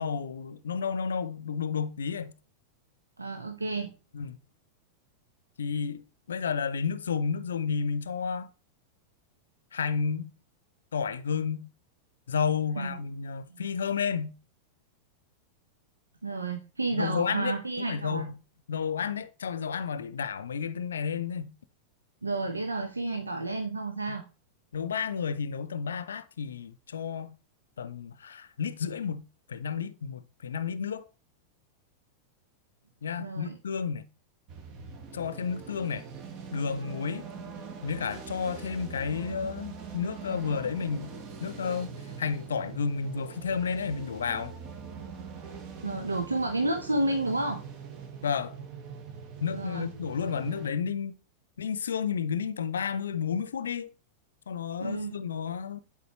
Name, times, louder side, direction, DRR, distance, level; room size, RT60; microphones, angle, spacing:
voice 1, 0.0-2.3 4.1-4.4 5.6-8.5 9.7-10.3 10.9-11.7 12.3-14.3 16.9-18.3 18.7-21.5 24.1-24.2 24.7-27.3 27.8-29.2 29.5-31.0 33.0-34.0 35.1-36.0 36.5-37.3 37.8-41.1 41.4-44.5 48.2-48.5 49.4-51.1 51.6-53.9 54.5-55.8, left 6 dB, 70° left, 0.6 m, -31 dB
voice 2, 3.2-3.9 12.8-13.0 13.5-13.6 16.2-18.3 22.2-24.2 33.2-33.6 45.8-47.6 49.5-49.9 54.8-55.1, right 2 dB, 80° right, 0.9 m, -31 dB
sound 1, 34.5-50.7, right 6 dB, 40° right, 1.3 m, -43 dB
10.5 x 4.9 x 3.1 m
figure-of-eight pair, 90°, 0 cm